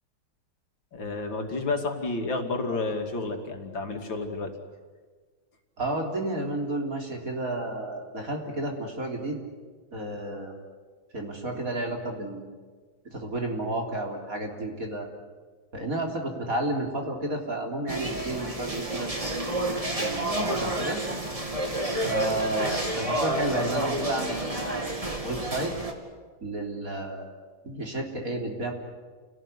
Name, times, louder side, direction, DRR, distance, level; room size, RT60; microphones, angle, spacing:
voice 1, 0.9-4.5, left 3 dB, 80° left, 4 dB, 3.4 m, -30 dB
voice 2, 5.8-9.4 9.9-10.6 11.1-12.4 13.1-15.1 15.7-19.5 20.0-21.0 22.0-24.9 25.2-25.7 26.4-27.3 27.6-28.7, right 1 dB, 45° right, 2 dB, 4.1 m, -31 dB
sound 1, 17.9-25.9, right 1 dB, 20° right, 2.6 m, -30 dB
28.5 x 18.0 x 9.9 m, 1.5 s
omnidirectional pair, 2.0 m